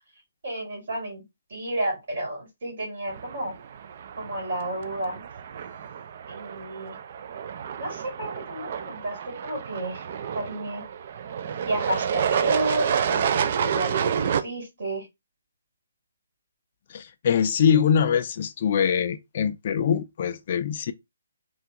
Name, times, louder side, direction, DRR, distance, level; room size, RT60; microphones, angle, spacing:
voice 1, 0.4-1.2 1.5-3.5 4.2-5.2 6.3-7.0 7.8-10.0 10.3-10.8 11.6-15.1, right 1 dB, 60° right, 2.3 m, -31 dB
sound 1, 3.1-14.4, right 8 dB, 45° right, 0.3 m, -29 dB
voice 2, 16.9-20.9, left 7 dB, 40° left, 0.3 m, -23 dB
3.3 x 2.3 x 2.8 m
hypercardioid pair, 160°, 0 cm